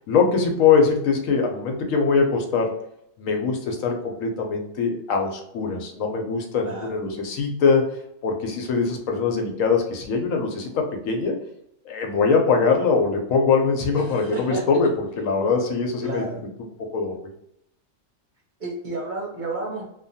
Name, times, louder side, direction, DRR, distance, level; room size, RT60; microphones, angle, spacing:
voice 1, 0.1-2.7 3.2-7.9 8.2-11.4 11.9-16.2 16.9-17.1, left 5 dB, 80° left, 3 dB, 1.0 m, -22 dB
voice 2, 6.6-7.0 14.0-14.6 16.0-16.4 18.6-19.9, right 2 dB, 45° right, -4 dB, 0.7 m, -31 dB
2.9 x 2.2 x 2.7 m, 0.77 s
omnidirectional pair, 1.4 m